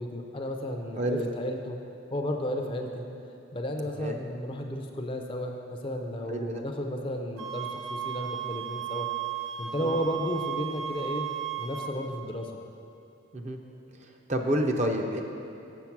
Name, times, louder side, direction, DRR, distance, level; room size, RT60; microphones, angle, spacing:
voice 1, 0.0-1.8 2.1-3.1 3.5-9.1 9.6-11.3 11.6-12.6, equal, 25° left, 3 dB, 0.5 m, -33 dB
voice 2, 1.0-1.3 4.0-4.1 6.3-6.6 9.8-10.0 13.3-13.6 14.3-15.2, right 1 dB, 35° right, 4 dB, 0.5 m, -28 dB
sound 1, 7.4-11.9, right 10 dB, 80° right, 0.7 m, -34 dB
7.1 x 7.0 x 5.9 m, 2.7 s
head